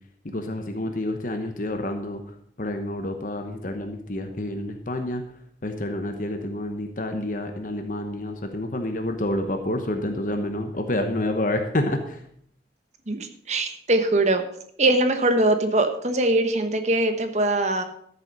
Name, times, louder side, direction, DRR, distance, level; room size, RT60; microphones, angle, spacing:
voice 1, 0.2-2.2 2.6-5.2 5.6-12.2, left 1 dB, 45° left, 5 dB, 1.0 m, -28 dB
voice 2, 13.1-14.4 14.8-17.8, right 2 dB, 40° right, 7 dB, 1.2 m, -22 dB
13.0 x 7.0 x 5.3 m, 0.67 s
head